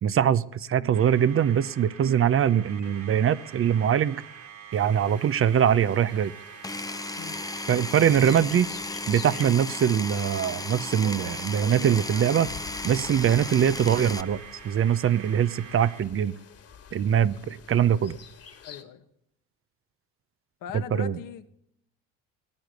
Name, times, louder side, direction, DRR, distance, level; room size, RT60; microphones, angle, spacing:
voice 1, 0.0-4.2 4.7-6.3 7.7-8.7 9.1-12.5 12.8-14.4 14.6-16.3 16.9-18.2 20.9-21.2, right 9 dB, 40° right, 16 dB, 0.7 m, -23 dB
sound 1, 0.9-16.1, right 8 dB, 60° right, 2.8 m, -46 dB
sound 2, 4.7-18.8, left 7 dB, 45° left, 2.2 m, -49 dB
Power tool, 6.6-14.2, left 3 dB, 10° left, 0.7 m, -35 dB
voice 2, 18.6-19.0 20.6-21.5, left 10 dB, 70° left, 9 dB, 1.5 m, -39 dB
19.0 x 8.9 x 8.2 m, 0.74 s
supercardioid pair, 80°, 34 cm